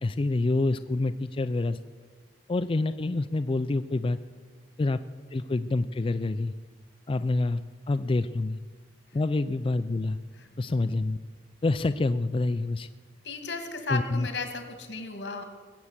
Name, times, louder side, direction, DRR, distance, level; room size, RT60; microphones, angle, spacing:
voice 1, 0.0-1.8 2.5-4.2 4.8-5.0 5.3-6.5 7.1-7.6 7.9-8.6 9.1-10.2 10.6-11.2 11.6-12.9 13.9-14.3, left 2 dB, 30° left, 10 dB, 0.4 m, -27 dB
voice 2, 13.2-15.4, left 3 dB, 80° left, 7 dB, 2.3 m, -34 dB
20.5 x 8.3 x 7.4 m, 1.5 s
head